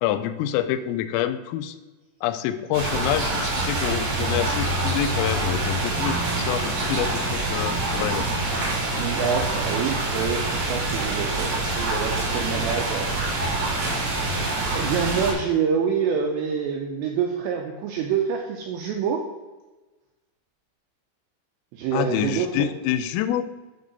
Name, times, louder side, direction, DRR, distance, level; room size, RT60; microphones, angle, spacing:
voice 1, 0.0-1.8 2.2-8.3 21.9-23.4, left 11 dB, 90° left, 12 dB, 3.2 m, -27 dB
sound 1, 2.7-15.3, right 2 dB, 60° right, 4.4 m, -26 dB
sound 2, 3.4-3.6 4.7-5.1 5.5-7.0, right 2 dB, 40° right, 1.4 m, -39 dB
voice 2, 8.9-13.1 13.4-13.6 14.7-19.3 21.7-22.7, right 7 dB, 85° right, 2 dB, 2.5 m, -26 dB
11.5 x 4.7 x 4.0 m, 1.2 s
omnidirectional pair, 5.8 m